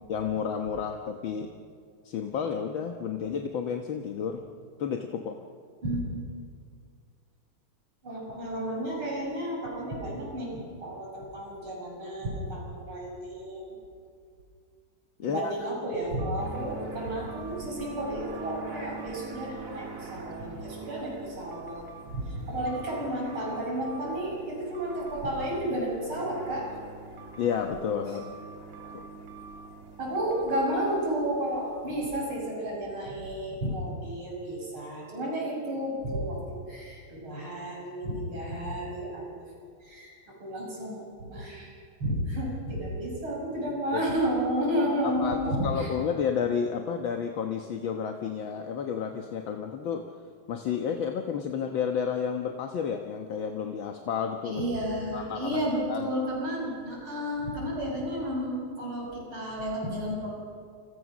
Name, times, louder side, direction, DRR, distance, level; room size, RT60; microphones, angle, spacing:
voice 1, 0.1-1.5 2.1-4.5 4.8-5.4 15.2-15.5 27.4-28.2 28.9-29.0 43.9-44.0 45.0-50.0 50.5-54.6 55.1-55.6 55.9-56.0, left 7 dB, 70° left, 4 dB, 2.0 m, -31 dB
voice 2, 5.8-6.1 8.0-13.7 15.2-21.8 22.1-26.7 30.0-39.4 39.8-41.7 42.0-45.9 54.4-60.3, equal, 85° right, -2 dB, 7.4 m, -32 dB
sound 1, 16.2-16.7 17.3-18.6 19.0-19.4 21.5-22.0 22.7-24.3 24.7-25.2 27.2-27.6 28.1-29.7 30.1-30.6, right 5 dB, 10° right, 2.6 m, -49 dB
sound 2, 16.4-32.2, right 4 dB, 40° right, 2.3 m, -45 dB
29.0 x 27.5 x 6.2 m, 2.2 s
omnidirectional pair, 2.3 m